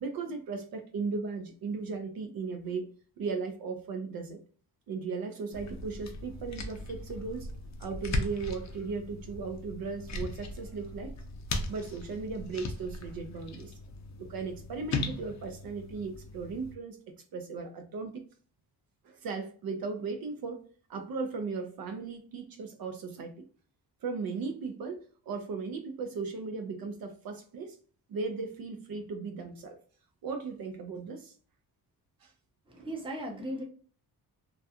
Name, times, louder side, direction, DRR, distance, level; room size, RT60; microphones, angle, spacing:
voice 1, 0.0-2.9 3.2-4.4 4.9-7.5 7.8-11.1 11.7-13.7 14.2-17.0 17.3-18.2 19.0-20.6 20.9-23.4 24.0-27.8 28.1-29.8 30.2-31.3 32.2-32.3 32.7-32.9, right 4 dB, 65° right, 0.5 m, -37 dB
sound 1, 5.5-16.7, left 2 dB, 45° left, 0.5 m, -38 dB
voice 2, 32.7-33.6, equal, 15° right, 0.7 m, -37 dB
2.3 x 2.2 x 2.6 m
cardioid pair, 110°, 39 cm